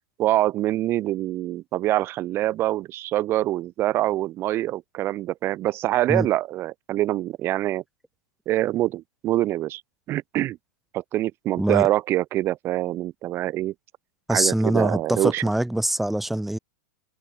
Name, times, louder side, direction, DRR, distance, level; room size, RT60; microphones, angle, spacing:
voice 1, 0.2-7.8 8.5-9.8 10.1-10.6 10.9-13.7 14.3-15.4, right 15 dB, 25° right, 1.5 m, -25 dB
voice 2, 14.3-16.6, right 1 dB, ahead, 0.7 m, -23 dB
open air
supercardioid pair, 170°, 10 cm